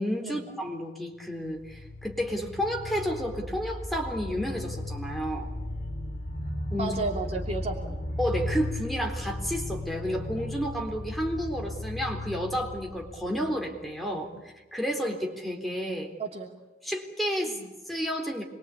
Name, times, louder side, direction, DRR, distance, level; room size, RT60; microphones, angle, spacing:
voice 1, 0.0-5.5 6.7-6.9 8.2-14.3 14.7-16.1 16.8-17.6 17.9-18.4, equal, ahead, 0 dB, 3.8 m, -31 dB
sound 1, 1.3-14.1, left 1 dB, 50° left, 6.0 m, -36 dB
voice 2, 6.8-8.0 16.2-16.6 17.5-17.7, right 3 dB, 40° right, 1 dB, 2.9 m, -33 dB
27.0 x 23.0 x 8.6 m, 1.1 s
head